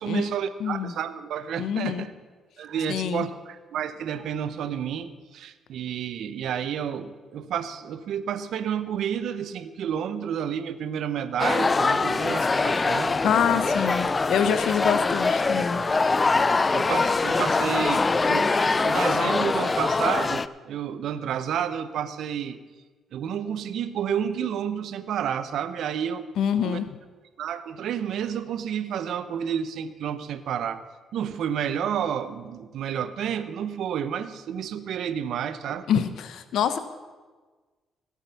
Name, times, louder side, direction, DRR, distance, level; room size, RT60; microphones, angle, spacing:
voice 1, 0.0-2.1 2.6-13.2 13.5-13.6 16.7-18.5 18.8-22.6 23.1-26.3 26.6-26.8 27.4-30.8 31.1-35.9, right 8 dB, 75° right, 12 dB, 0.7 m, -30 dB
voice 2, 0.6-0.9 1.6-2.1 2.9-3.3 13.2-15.8 26.4-27.0 35.9-36.8, left 8 dB, 75° left, 12 dB, 0.7 m, -26 dB
sound 1, 11.4-20.5, left 3 dB, 30° left, 0.4 m, -23 dB
17.0 x 7.3 x 5.7 m, 1.4 s
cardioid pair, 90°, 0 cm